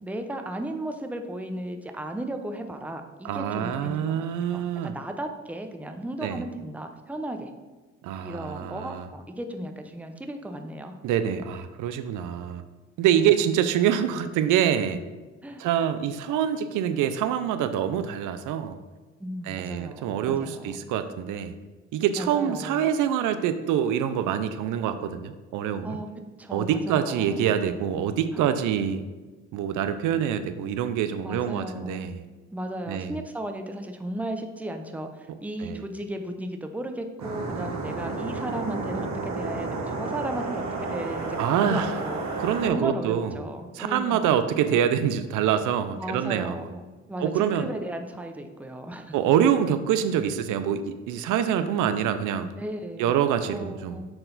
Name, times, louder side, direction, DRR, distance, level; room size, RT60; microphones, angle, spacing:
voice 1, 0.0-7.5 8.2-10.9 15.4-15.6 19.2-20.8 22.1-22.9 25.8-26.1 26.4-27.4 28.3-28.5 31.2-32.2 32.5-42.2 42.7-44.3 46.0-49.1 52.6-53.1 53.5-54.1, right 1 dB, 5° right, 5 dB, 0.6 m, -35 dB
voice 2, 3.2-4.9 6.2-6.4 8.0-9.1 11.0-12.6 13.0-15.0 15.6-18.8 19.4-21.5 21.9-26.0 26.5-29.0 29.5-32.2 32.9-33.2 35.3-35.8 41.4-42.0 42.4-43.4 43.7-46.7 47.2-47.7 49.1-52.5 53.0-54.0, right 9 dB, 85° right, 10 dB, 0.5 m, -25 dB
sound 1, 37.2-42.7, right 3 dB, 65° right, 1.1 m, -31 dB
6.8 x 3.9 x 3.9 m, 1.3 s
cardioid pair, 90°, 30 cm